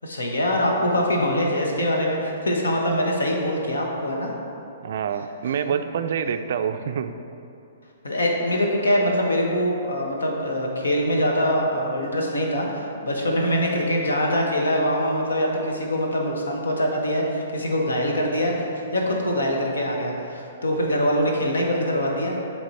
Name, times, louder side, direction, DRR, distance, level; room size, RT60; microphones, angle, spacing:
voice 1, 0.0-4.3 8.0-18.6 18.9-22.3, equal, 80° left, 0 dB, 1.0 m, -23 dB
voice 2, 4.8-7.1, right 7 dB, 60° right, 9 dB, 0.3 m, -26 dB
8.0 x 3.4 x 4.1 m, 2.7 s
figure-of-eight pair, 120°, 0 cm